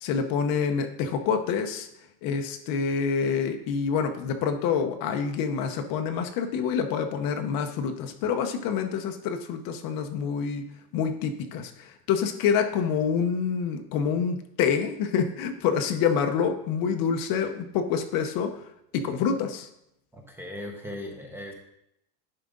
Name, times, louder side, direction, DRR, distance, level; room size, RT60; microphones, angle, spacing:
voice 1, 0.0-1.9 2.2-10.6 10.9-18.5 18.9-19.7, left 6 dB, 45° left, 6 dB, 0.8 m, -27 dB
voice 2, 20.1-21.5, left 1 dB, 5° right, 1 dB, 0.9 m, -38 dB
10.5 x 5.0 x 3.8 m, 0.79 s
cardioid pair, 155°, 47 cm